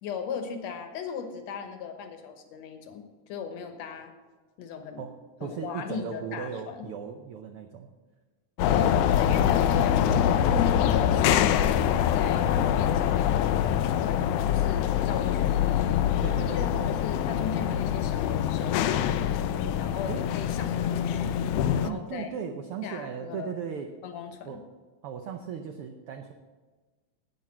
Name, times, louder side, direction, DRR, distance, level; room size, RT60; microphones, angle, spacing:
voice 1, 0.0-4.1 4.6-5.0 5.4-6.9 8.7-13.4 14.0-15.8 16.3-19.0 19.8-21.4 21.7-22.3 22.8-23.5 24.0-24.6, left 6 dB, 65° left, 7 dB, 2.3 m, -38 dB
voice 2, 5.4-7.9 8.6-9.3 16.2-16.9 20.1-20.3 21.8-23.9 24.4-24.6 25.0-26.3, right 7 dB, 85° right, 5 dB, 1.2 m, -37 dB
sound 1, 8.6-21.9, left 10 dB, 90° left, 2.1 m, -24 dB
10.5 x 9.3 x 7.3 m, 1.4 s
omnidirectional pair, 3.5 m